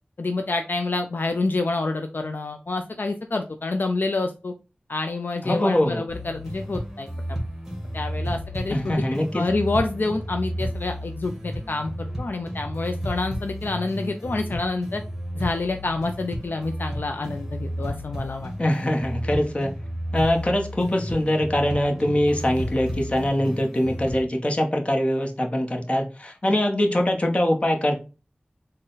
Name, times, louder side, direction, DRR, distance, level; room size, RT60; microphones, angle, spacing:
voice 1, 0.2-4.5 4.9-7.4 7.9-9.0 9.3-15.0 15.4-18.5 26.4-26.6, left 3 dB, 70° left, 5 dB, 0.3 m, -28 dB
voice 2, 5.4-6.1 8.7-9.4 18.6-19.7 20.1-28.0, left 1 dB, 35° left, 2 dB, 0.8 m, -23 dB
sound 1, 6.1-24.2, equal, 10° right, 1.3 m, -32 dB
3.9 x 2.1 x 3.8 m, 0.32 s
wide cardioid pair, 45°, 3 cm